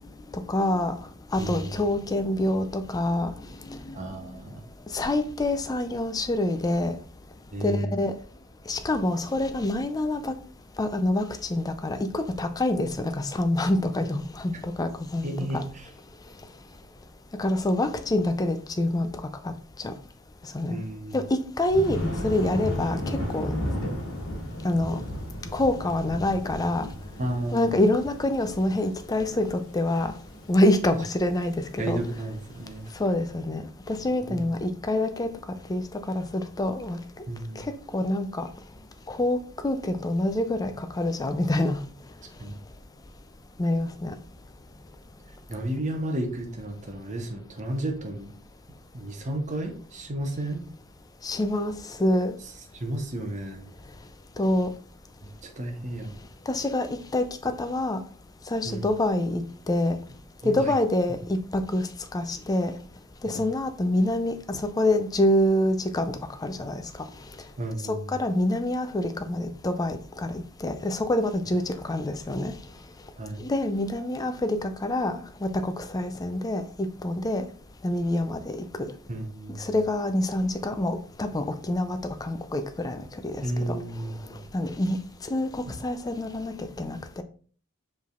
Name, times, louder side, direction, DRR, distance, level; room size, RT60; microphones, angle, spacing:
voice 1, 0.5-0.9 1.3-3.3 3.7-4.0 4.9-6.9 7.6-8.1 8.7-10.3 10.8-11.2 11.5-15.6 17.4-19.1 19.8-19.9 20.5-20.8 21.1-21.2 21.6-23.5 24.6-25.0 25.5-26.9 27.5-30.1 30.5-32.0 33.0-33.6 33.9-35.3 35.7-35.8 36.1-37.0 37.9-38.5 39.1-39.4 39.6-41.8 43.6-44.1 51.2-51.7 52.0-52.4 54.4-54.7 56.5-56.9 57.1-58.0 58.5-59.4 59.7-60.0 60.4-61.2 61.5-61.8 62.1-62.7 63.2-66.1 66.4-66.8 67.9-70.0 70.6-72.5 73.4-75.1 75.4-76.6 77.0-77.4 77.8-78.6 79.6-83.0 83.2-83.3 83.7-83.8 84.5-85.0 85.3-87.2, left 1 dB, 15° left, 8 dB, 0.4 m, -26 dB
voice 2, 1.4-1.8 3.9-4.6 7.5-8.0 14.5-14.6 15.2-15.9 20.7-21.2 27.2-27.7 31.8-32.9 34.1-34.4 37.3-37.7 42.4-42.6 45.5-48.3 48.9-50.6 52.7-53.7 55.4-56.2 58.6-58.8 60.4-60.7 63.3-63.4 67.6-68.1 73.2-73.4 79.1-79.7 83.4-84.4 85.7-85.8, right 1 dB, 35° right, 3 dB, 0.7 m, -32 dB
Thunder, 21.7-32.8, left 1 dB, 65° left, 1.3 m, -34 dB
5.3 x 3.3 x 2.4 m, 0.44 s
head